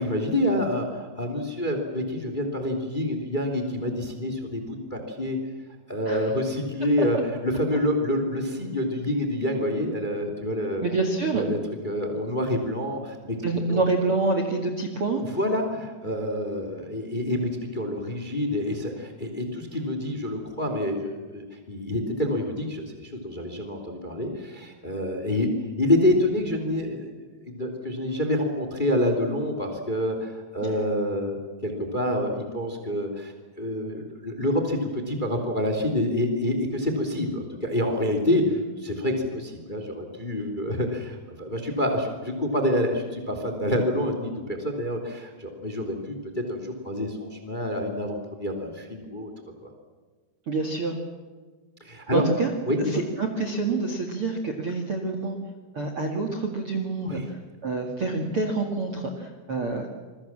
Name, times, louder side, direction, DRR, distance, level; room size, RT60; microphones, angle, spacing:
voice 1, 0.0-5.4 5.9-10.8 11.3-11.6 11.8-13.4 13.7-13.8 15.3-25.5 25.8-27.1 27.5-49.3 51.8-52.3 52.7-53.0 57.0-57.3, left 1 dB, 15° left, 5 dB, 2.4 m, -27 dB
voice 2, 10.8-11.4 13.4-15.2 50.5-51.0 52.1-52.5 52.8-55.4 55.7-57.2 57.6-59.9, right 3 dB, 40° right, 5 dB, 2.2 m, -27 dB
27.5 x 22.0 x 7.4 m, 1.4 s
omnidirectional pair, 5.0 m